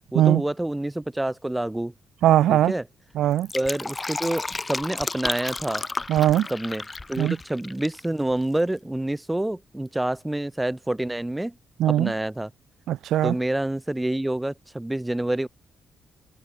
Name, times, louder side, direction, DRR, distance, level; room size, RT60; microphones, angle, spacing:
voice 1, 0.1-1.9 2.5-2.8 3.5-5.8 6.5-11.5 11.9-12.5 13.2-15.5, right 1 dB, 5° right, 4.2 m, -27 dB
voice 2, 2.2-2.7 3.1-3.5 6.1-6.5 7.2-7.3 11.8-12.1 12.9-13.3, right 12 dB, 85° right, 1.3 m, -20 dB
Fill (with liquid), 3.2-8.0 8.3-8.4, left 3 dB, 15° left, 7.3 m, -32 dB
open air
cardioid pair, 170°, 0 cm